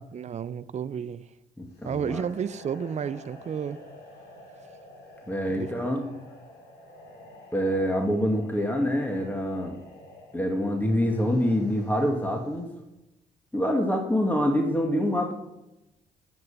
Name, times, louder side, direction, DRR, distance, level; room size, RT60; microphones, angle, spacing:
voice 1, 0.1-1.3 1.8-3.8 5.5-6.1, right 7 dB, 40° right, 0.6 m, -32 dB
voice 2, 1.6-2.2 5.3-6.0 7.5-9.8 10.3-12.7 13.5-15.3, equal, 10° left, 2.2 m, -26 dB
sound 1, 1.7-12.8, left 1 dB, 65° left, 3.4 m, -49 dB
10.5 x 7.6 x 6.9 m
hypercardioid pair, 45°, 18 cm